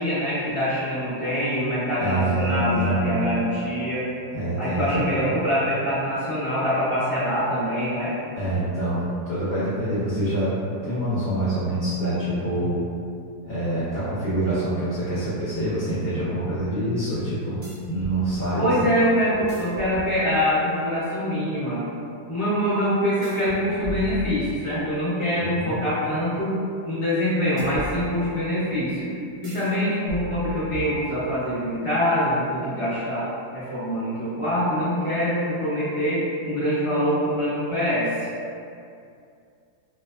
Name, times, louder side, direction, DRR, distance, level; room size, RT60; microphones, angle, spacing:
voice 1, 0.0-4.1 4.6-8.1 18.5-21.8 22.3-26.6 26.8-29.1 29.4-33.3 33.5-38.1, equal, 25° left, -14 dB, 0.9 m, -24 dB
voice 2, 2.0-3.2 4.3-4.9 5.2-5.4 8.3-12.8 13.4-17.6 17.9-18.7 25.4-25.7, right 1 dB, 55° left, -12 dB, 0.7 m, -26 dB
sound 1, 17.6-18.2 19.3-20.6 23.2-24.9 27.6-28.6 29.4-29.7 30.1-31.4, left 1 dB, 60° right, 0.6 m, -37 dB
2.5 x 2.2 x 2.3 m, 2.4 s
omnidirectional pair, 1.7 m